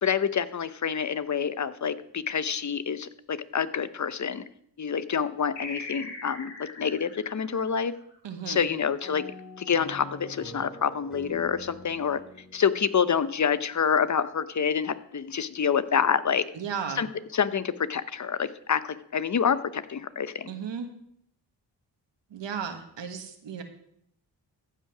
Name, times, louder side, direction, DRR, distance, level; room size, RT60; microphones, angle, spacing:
voice 1, 0.0-4.4 4.8-7.9 8.5-9.2 9.6-12.2 12.5-16.5 17.0-17.1 17.3-20.5, left 7 dB, 40° left, 14 dB, 0.8 m, -27 dB
sound 1, 5.6-8.6, left 3 dB, 70° left, 3.1 m, -41 dB
voice 2, 8.2-8.7 16.5-17.0 20.4-20.9 22.3-23.6, right 7 dB, 70° right, 6 dB, 1.6 m, -35 dB
sound 2, 9.0-13.6, left 2 dB, ahead, 3.5 m, -46 dB
14.5 x 5.7 x 6.1 m, 0.72 s
cardioid pair, 55°, 45 cm